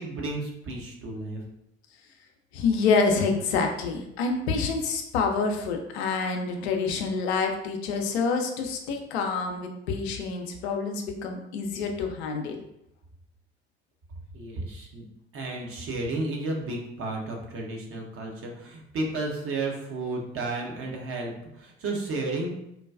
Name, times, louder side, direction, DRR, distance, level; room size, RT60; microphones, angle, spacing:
voice 1, 0.0-1.4 14.3-15.0 15.3-22.5, right 2 dB, 40° right, 0 dB, 0.8 m, -32 dB
voice 2, 2.5-12.6, left 4 dB, 70° left, 3 dB, 0.5 m, -27 dB
3.9 x 2.2 x 2.3 m, 0.80 s
figure-of-eight pair, 60°, 34 cm